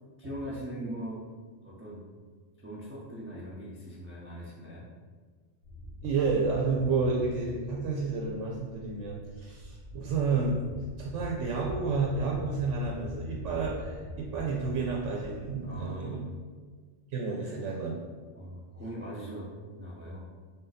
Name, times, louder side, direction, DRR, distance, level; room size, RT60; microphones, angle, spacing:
voice 1, 0.2-1.2 1.6-2.0 2.6-4.9 15.6-16.2 17.3-17.6 18.3-20.2, equal, 15° right, -6 dB, 0.4 m, -41 dB
sound 1, 5.6-16.0, equal, 70° left, 1.3 m, -44 dB
voice 2, 6.0-10.6 11.0-16.2 17.1-17.9, right 4 dB, 90° right, -2 dB, 0.9 m, -30 dB
3.9 x 2.6 x 3.9 m, 1.5 s
omnidirectional pair, 1.2 m